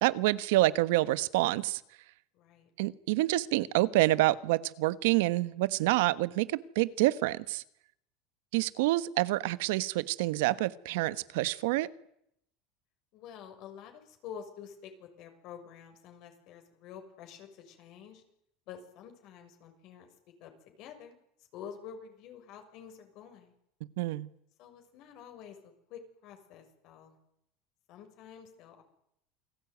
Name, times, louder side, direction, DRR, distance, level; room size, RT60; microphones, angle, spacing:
voice 1, 0.0-1.8 2.8-7.6 8.5-11.9 24.0-24.3, right 18 dB, 80° right, 16 dB, 1.3 m, -27 dB
voice 2, 2.3-2.7 13.1-18.2 18.7-20.1 20.4-21.2 21.5-23.5 24.6-27.2 27.9-28.8, left 8 dB, 50° left, 5 dB, 6.6 m, -48 dB
28.5 x 20.0 x 9.5 m, 0.76 s
cardioid pair, 150°, 0 cm